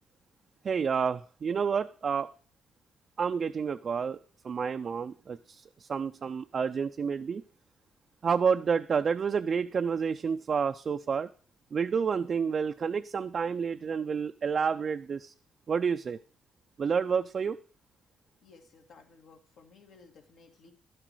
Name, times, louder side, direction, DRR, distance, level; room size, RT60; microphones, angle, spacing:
voice 1, 0.6-2.3 3.2-4.2 4.4-7.4 8.2-11.3 11.7-15.3 15.7-16.2 16.8-17.6, right 6 dB, 45° right, 7 dB, 0.4 m, -29 dB
voice 2, 18.4-20.7, left 4 dB, 75° left, 3 dB, 2.0 m, -56 dB
12.0 x 7.6 x 4.7 m, 0.42 s
cardioid pair, 90°, 0 cm